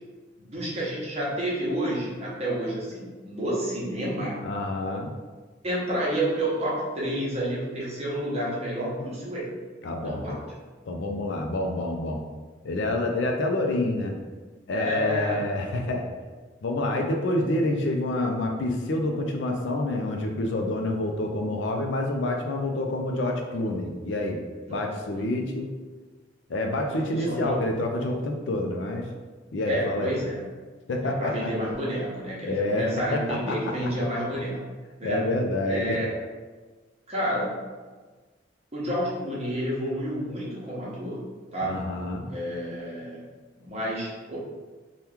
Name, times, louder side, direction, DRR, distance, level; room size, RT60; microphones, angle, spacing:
voice 1, 0.4-4.4 5.6-9.6 10.0-10.4 14.7-15.5 24.7-25.3 26.8-27.6 29.4-30.4 31.0-34.6 35.0-35.2 35.7-36.1 37.1-37.6 38.7-41.2 41.5-41.8 42.3-43.2 43.6-44.4, equal, 35° right, -6 dB, 0.8 m, -30 dB
voice 2, 4.4-5.1 9.8-10.4 10.9-12.2 12.6-14.2 14.7-16.1 16.6-24.4 24.7-25.7 26.5-29.1 29.5-30.1 30.9-31.5 32.4-33.6 35.0-35.9 41.6-42.2, left 1 dB, 65° left, 2 dB, 0.4 m, -28 dB
2.9 x 2.3 x 3.4 m, 1.3 s
head